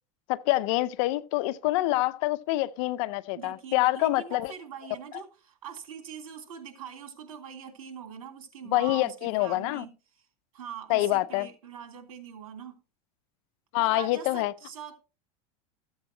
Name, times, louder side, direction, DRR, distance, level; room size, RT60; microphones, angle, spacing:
voice 1, 0.3-4.5 8.7-9.8 10.9-11.5 13.7-14.5, left 18 dB, 60° left, 0.6 m, -26 dB
voice 2, 3.4-10.2 10.5-12.8 13.8-15.0, right 8 dB, 85° right, 2.9 m, -43 dB
14.0 x 7.9 x 2.8 m
supercardioid pair, 125°, 18 cm